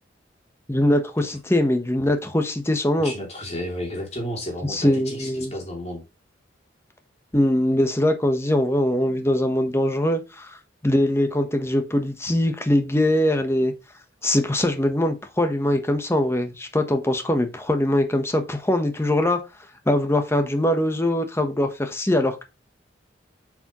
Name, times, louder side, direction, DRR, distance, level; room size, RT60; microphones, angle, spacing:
voice 1, 0.7-3.1 4.7-5.5 7.3-10.6 10.8-13.7 14.2-19.4 19.9-22.4, left 1 dB, 15° left, 0.9 m, -22 dB
voice 2, 3.0-6.0, equal, 35° left, 2.6 m, -32 dB
7.6 x 4.9 x 3.0 m
head